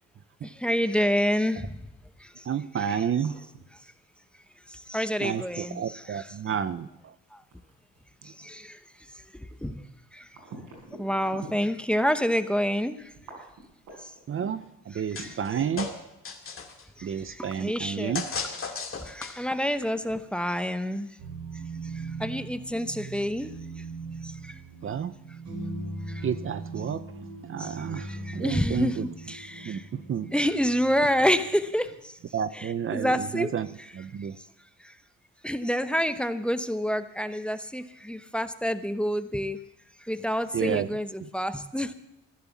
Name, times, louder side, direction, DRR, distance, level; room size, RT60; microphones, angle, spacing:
voice 1, 0.4-1.8 2.2-2.4 2.9-3.0 4.7-6.6 7.3-7.4 8.2-8.8 9.3-9.8 10.1-10.3 11.0-13.1 14.0-14.1 14.9-15.4 17.0-18.2 19.0-21.1 21.9-23.6 24.2-24.6 26.1-26.3 27.6-29.9 30.3-32.2 32.5-33.5 33.8-33.9 34.8-34.9 35.4-39.6 40.0-41.9, equal, 5° left, 10 dB, 0.9 m, -28 dB
sound 1, 1.4-12.0 12.4-12.5 12.9-16.0, right 3 dB, 85° right, 7.1 m, -48 dB
voice 2, 2.5-3.3 5.2-7.1 14.3-15.9 17.0-18.2 24.8-25.1 26.2-27.0 27.5-29.1 29.7-30.3 32.3-33.7 33.9-34.4 40.5-40.9 41.2-41.3, right 8 dB, 45° right, 13 dB, 0.6 m, -30 dB
sound 2, 15.1-15.5 15.8-16.8 18.1-19.6, left 5 dB, 45° left, 2.2 m, -35 dB
sound 3, 21.2-31.9, right 3 dB, 65° right, 5.5 m, -40 dB
15.0 x 11.0 x 7.3 m, 0.87 s
cardioid pair, 90°, 30 cm